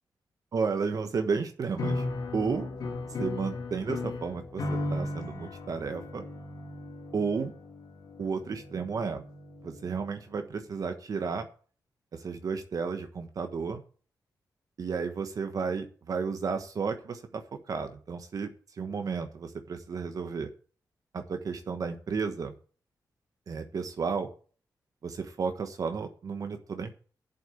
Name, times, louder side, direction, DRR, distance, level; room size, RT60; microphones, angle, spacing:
voice 1, 0.5-2.0 2.3-2.7 3.2-6.2 7.1-7.5 8.2-9.2 9.6-11.5 12.1-13.8 14.8-18.5 18.8-20.5 21.1-22.5 23.5-24.3 25.0-27.0, right 5 dB, 55° right, 6 dB, 1.2 m, -32 dB
sound 1, 1.7-10.1, left 2 dB, 70° left, 2.6 m, -36 dB
8.4 x 7.8 x 8.3 m, 0.41 s
wide cardioid pair, 125°, 7 cm